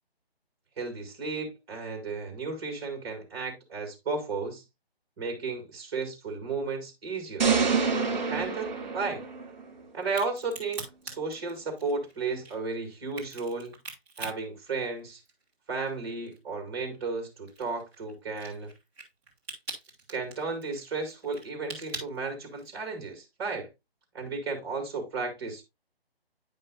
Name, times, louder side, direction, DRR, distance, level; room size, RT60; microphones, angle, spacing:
voice 1, 0.8-4.6 5.2-7.5 8.1-9.2 9.9-13.7 14.2-15.2 15.7-18.7 20.1-23.7 24.1-25.6, right 4 dB, 25° right, 2.3 m, -34 dB
sound 1, 7.4-9.7, right 5 dB, 45° right, 2.3 m, -27 dB
Crack, 10.0-15.5 15.9-22.9, right 3 dB, 5° right, 1.1 m, -43 dB
9.5 x 5.4 x 2.5 m
hypercardioid pair, 165°, 31 cm